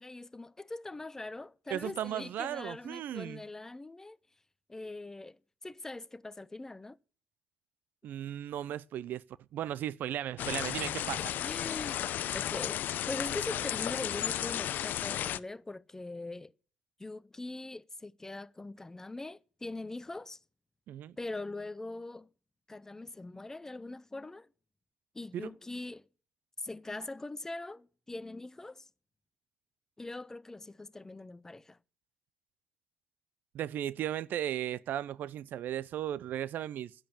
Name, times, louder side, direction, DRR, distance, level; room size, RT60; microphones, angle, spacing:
voice 1, 0.0-4.2 4.7-7.0 11.4-12.0 12.3-12.8 13.1-16.5 17.0-20.4 21.2-22.3 22.7-24.5 25.1-26.0 26.6-28.9 30.0-31.8, left 2 dB, 15° left, 0.6 m, -42 dB
voice 2, 1.7-3.4 8.0-9.2 9.5-11.3 20.9-21.2 25.3-25.5 33.5-36.9, right 11 dB, 55° right, 0.5 m, -36 dB
sound 1, 10.4-15.4, left 11 dB, 55° left, 0.6 m, -34 dB
10.5 x 8.9 x 7.4 m
supercardioid pair, 90°, 4 cm